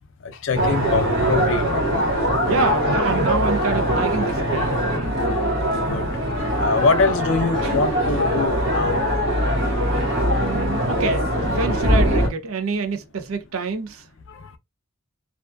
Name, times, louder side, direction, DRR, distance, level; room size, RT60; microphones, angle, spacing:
voice 1, 0.2-1.7 5.9-6.1 6.6-9.0 14.3-14.4, left 4 dB, 60° left, 0.5 m, -23 dB
sound 1, 0.5-12.3, equal, 60° right, 1.1 m, -21 dB
voice 2, 2.5-4.8 10.3-14.1, right 4 dB, 75° right, 0.6 m, -27 dB
2.6 x 2.2 x 2.3 m
head